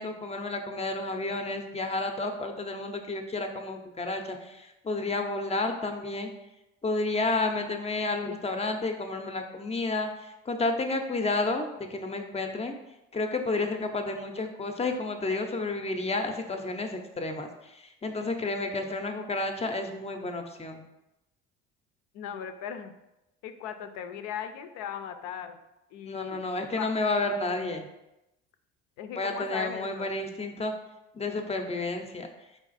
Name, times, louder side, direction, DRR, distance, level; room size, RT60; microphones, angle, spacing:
voice 1, 0.0-6.3 6.8-12.8 13.1-20.8 26.1-27.9 29.2-30.7 31.1-32.3, left 2 dB, 20° left, 5 dB, 0.6 m, -31 dB
voice 2, 22.1-22.9 23.4-25.6 25.9-26.4 26.8-26.9 29.0-30.1, left 8 dB, 65° left, 7 dB, 0.5 m, -38 dB
4.6 x 2.4 x 4.0 m, 0.94 s
hypercardioid pair, 70°, 30 cm